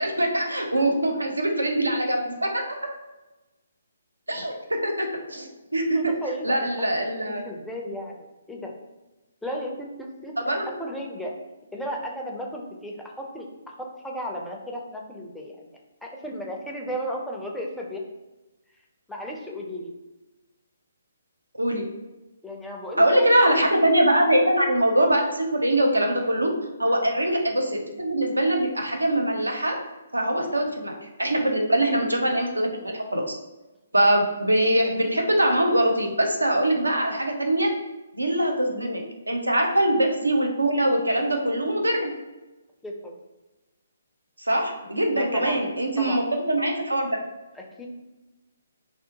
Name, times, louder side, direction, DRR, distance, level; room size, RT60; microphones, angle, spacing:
voice 1, 0.0-2.6 4.3-4.5 4.8-6.1 6.4-7.5 10.4-10.7 21.6-21.9 23.0-26.5 26.8-29.8 30.1-33.2 33.9-37.7 38.1-39.0 39.3-42.1 44.4-46.2 46.5-47.2, right 1 dB, 85° right, 3 dB, 0.5 m, -23 dB
voice 2, 5.9-6.7 7.4-8.7 9.4-10.3 10.8-11.4 11.7-13.5 13.8-15.7 16.0-18.0 19.1-19.9 22.4-23.3 26.9-27.0 30.5-30.7 42.8-43.2 45.1-45.6 46.0-46.2 47.5-47.9, equal, 5° left, -2 dB, 0.4 m, -34 dB
2.7 x 2.0 x 2.8 m, 1.0 s
figure-of-eight pair, 135°, 0 cm